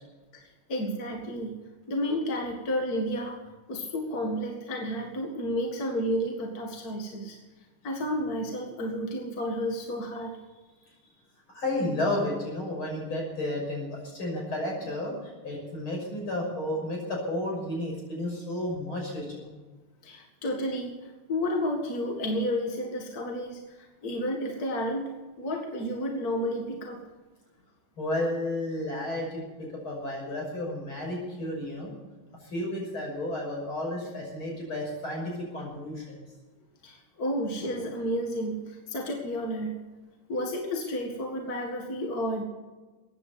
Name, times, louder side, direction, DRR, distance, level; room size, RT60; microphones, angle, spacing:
voice 1, 0.3-1.6 1.9-3.4 3.7-7.4 7.8-10.3 20.0-25.1 25.4-27.0 36.8-39.8 40.3-42.4, equal, 45° left, 2 dB, 2.3 m, -31 dB
voice 2, 11.5-15.1 15.4-19.5 28.0-31.9 32.5-36.2, left 1 dB, 80° left, -1 dB, 6.9 m, -32 dB
15.0 x 9.8 x 8.3 m, 1.2 s
omnidirectional pair, 2.3 m